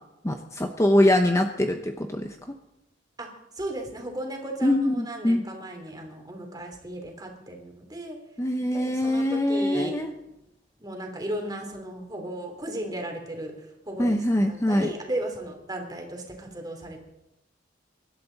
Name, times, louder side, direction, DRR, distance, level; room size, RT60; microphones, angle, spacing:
voice 1, 0.2-2.4 4.6-5.4 8.4-10.1 14.0-14.9, left 1 dB, 15° left, 5 dB, 0.8 m, -23 dB
voice 2, 3.5-8.2 8.7-10.0 10.8-17.0, right 1 dB, 20° right, 3 dB, 3.1 m, -35 dB
24.5 x 12.0 x 4.0 m, 0.87 s
head